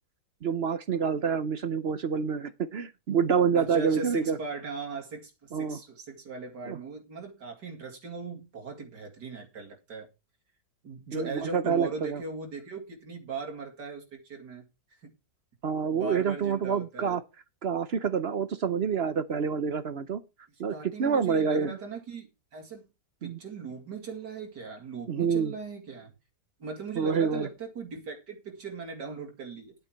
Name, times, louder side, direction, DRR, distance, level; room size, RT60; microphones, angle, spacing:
voice 1, 0.4-4.4 5.5-5.8 6.6-6.8 11.1-12.2 15.6-17.2 17.6-20.2 20.6-20.7 21.0-21.8 23.2-23.4 25.1-25.5 27.0-27.5, right 6 dB, 50° right, 0.8 m, -27 dB
voice 2, 3.6-10.1 10.8-14.7 15.0-15.1 15.9-17.2 20.7-22.9 23.2-26.1 26.6-29.7, right 4 dB, 75° right, 2.9 m, -39 dB
10.5 x 8.8 x 4.5 m
omnidirectional pair, 1.8 m